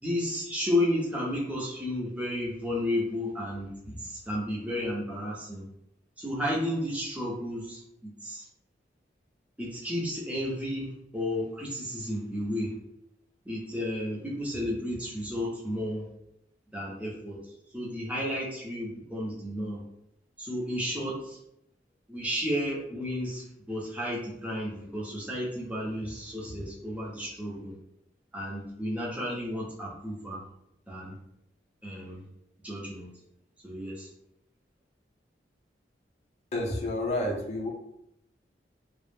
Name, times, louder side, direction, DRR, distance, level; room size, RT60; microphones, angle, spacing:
voice 1, 0.0-5.6 6.2-8.5 9.6-10.9 11.1-12.7 13.4-16.1 16.7-19.8 20.4-21.4 22.1-27.7 28.3-30.4 30.9-31.2 31.8-32.2 32.6-33.1 33.6-34.1, left 1 dB, 10° right, -5 dB, 0.6 m, -32 dB
voice 2, 36.5-37.7, left 1 dB, 35° left, -1 dB, 0.4 m, -30 dB
2.3 x 2.0 x 3.2 m, 0.80 s
head